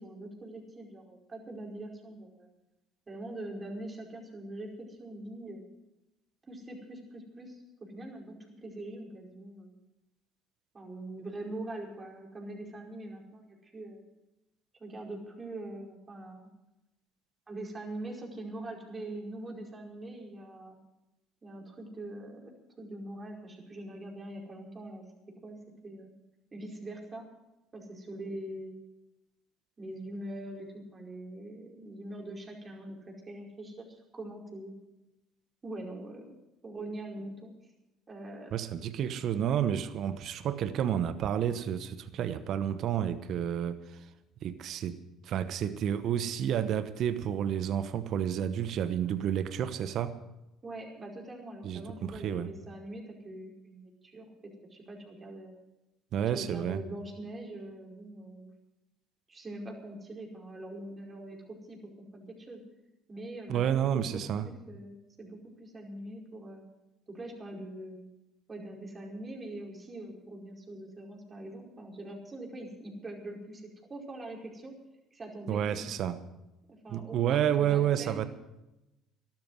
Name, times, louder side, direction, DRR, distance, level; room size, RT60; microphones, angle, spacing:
voice 1, 0.0-2.5 3.1-5.6 6.5-9.7 10.7-14.0 14.8-16.5 17.5-20.8 21.4-22.5 22.8-25.0 25.4-25.6 25.8-26.1 26.5-27.3 27.7-28.7 29.8-34.7 35.6-36.3 36.6-37.5 38.1-38.5 50.6-55.5 56.3-58.5 59.3-62.6 63.1-66.6 67.1-68.0 68.5-74.7 75.1-75.9 76.7-78.3, right 1 dB, 30° right, 0 dB, 4.9 m, -43 dB
voice 2, 38.5-44.1 44.4-50.1 51.6-52.5 56.1-56.8 63.5-64.5 75.5-76.2 76.9-78.3, right 9 dB, 60° right, 12 dB, 1.0 m, -30 dB
13.5 x 12.0 x 7.7 m, 0.94 s
hypercardioid pair, 65°, 0 cm